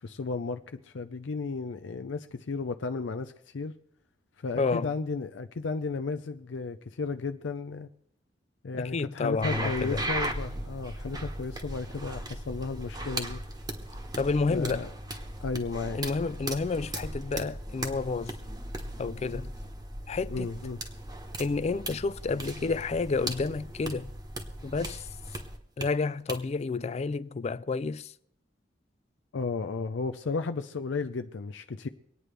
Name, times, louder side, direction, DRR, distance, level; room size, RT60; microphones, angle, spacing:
voice 1, 0.0-3.7 4.4-7.9 8.6-13.4 14.5-14.9 15.4-16.0 20.3-20.8 29.3-31.9, left 4 dB, 90° left, 0.5 m, -34 dB
voice 2, 4.6-4.9 8.7-10.1 14.2-14.9 15.9-18.4 19.0-19.5 20.1-20.5 21.4-24.1 24.6-25.1 25.8-28.1, left 4 dB, 35° left, 0.4 m, -30 dB
sound 1, 9.4-25.9 26.3-26.4, right 1 dB, 20° right, 1.1 m, -37 dB
24.5 x 9.2 x 3.3 m
head